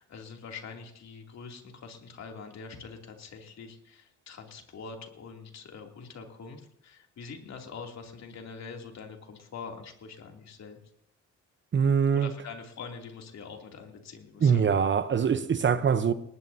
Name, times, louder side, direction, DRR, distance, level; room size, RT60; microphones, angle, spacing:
voice 1, 0.0-10.8 12.1-14.7, left 5 dB, 60° left, 2.9 m, -44 dB
voice 2, 11.7-12.3 14.4-16.1, right 6 dB, 40° right, 0.9 m, -23 dB
19.5 x 18.5 x 2.8 m
cardioid pair, 90°, 30 cm